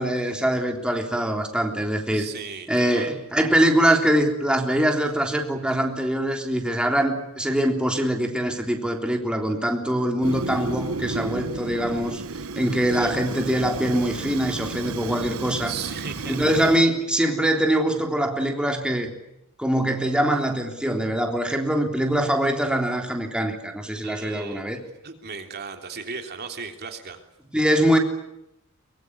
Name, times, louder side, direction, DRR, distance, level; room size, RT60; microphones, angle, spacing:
voice 1, 0.0-2.3 2.7-12.2 12.5-15.7 16.2-19.1 19.6-24.8 27.5-28.0, right 1 dB, 5° right, 3 dB, 3.4 m, -23 dB
voice 2, 2.1-3.1 12.9-13.1 15.7-16.4 24.0-24.6 25.0-27.2, right 5 dB, 50° right, 5 dB, 3.3 m, -36 dB
Fire, 10.2-16.8, right 3 dB, 80° right, 1.1 m, -32 dB
24.0 x 22.5 x 9.8 m, 0.83 s
head